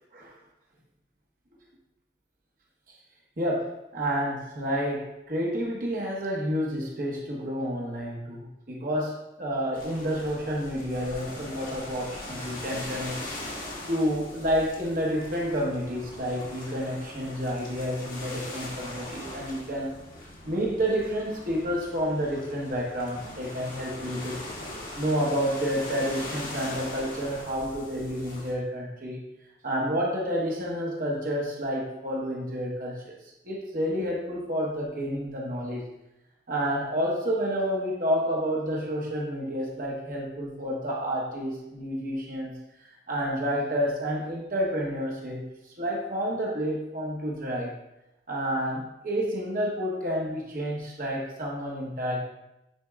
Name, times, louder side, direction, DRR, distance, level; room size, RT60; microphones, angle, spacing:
voice 1, 3.4-13.2 13.9-19.9 20.4-24.4 25.0-29.2 29.6-33.2 33.4-35.8 36.5-45.5 45.8-47.7 48.3-52.2, equal, 50° right, -3 dB, 1.1 m, -29 dB
sound 1, 9.7-28.5, left 1 dB, 55° left, 1.6 m, -41 dB
9.3 x 4.4 x 2.4 m, 0.91 s
head